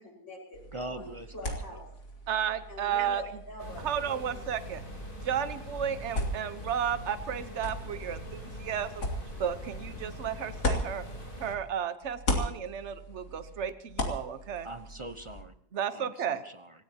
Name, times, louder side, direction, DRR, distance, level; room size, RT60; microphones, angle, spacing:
voice 1, 0.0-0.6 0.9-1.9 2.7-4.4, left 1 dB, 50° left, -4 dB, 6.1 m, -45 dB
sound 1, 0.5-11.7 12.0-15.4, left 1 dB, 85° left, 3.4 m, -37 dB
voice 2, 0.7-1.8 14.6-15.6 15.9-16.8, right 1 dB, 25° right, 9 dB, 0.7 m, -42 dB
voice 3, 2.3-3.4 3.8-4.8 5.2-9.1 9.4-11.0 11.4-14.7 15.7-16.4, right 8 dB, 50° right, 11 dB, 1.3 m, -33 dB
sound 2, 3.6-11.6, equal, 35° left, 3.9 m, -43 dB
26.5 x 16.0 x 2.9 m, 0.72 s
omnidirectional pair, 1.6 m